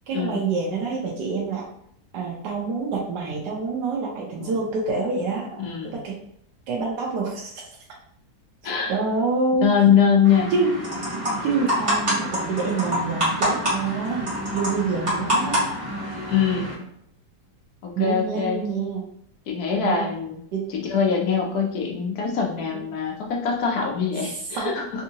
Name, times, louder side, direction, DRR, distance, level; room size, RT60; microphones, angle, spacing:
voice 1, 0.1-1.7 2.1-6.1 6.7-7.6 8.9-9.7 10.5-10.7 11.1-14.3 14.5-15.6 18.0-19.1 19.7-20.1 20.5-20.7 22.7-22.8 24.2-24.7, right 4 dB, 75° right, -2 dB, 1.2 m, -27 dB
voice 2, 5.6-5.9 8.6-8.9 9.6-10.5 16.3-16.7 17.8-18.6 19.5-20.4 20.7-25.0, left 7 dB, 70° left, 1 dB, 1.1 m, -23 dB
sound 1, 10.3-16.7, equal, 20° right, 1.2 m, -26 dB
3.6 x 2.6 x 2.8 m, 0.69 s
omnidirectional pair, 1.8 m